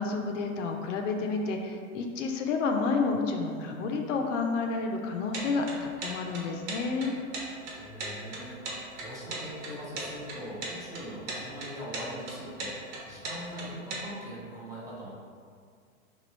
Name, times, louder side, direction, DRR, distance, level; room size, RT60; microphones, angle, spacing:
voice 1, 0.0-7.1, left 4 dB, 65° left, 3 dB, 0.6 m, -30 dB
plastic clock tick near nm, 5.3-14.0, right 2 dB, 55° right, 1.1 m, -37 dB
voice 2, 7.7-15.1, equal, 10° right, -8 dB, 0.5 m, -41 dB
3.1 x 2.3 x 4.2 m, 2.1 s
hypercardioid pair, 115°, 41 cm